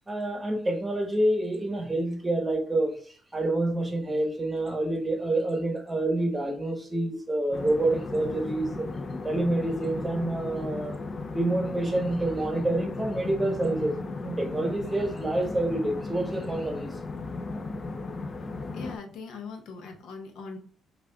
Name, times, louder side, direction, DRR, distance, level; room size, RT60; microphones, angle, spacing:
voice 1, 0.1-8.9 9.2-11.0 11.3-14.0 14.2-16.9, right 1 dB, 15° right, 0.9 m, -27 dB
sound 1, 7.5-19.0, left 3 dB, 40° left, 0.3 m, -36 dB
voice 2, 18.7-20.6, left 4 dB, 80° left, 0.7 m, -40 dB
4.9 x 2.4 x 2.2 m
cardioid pair, 90°, 0 cm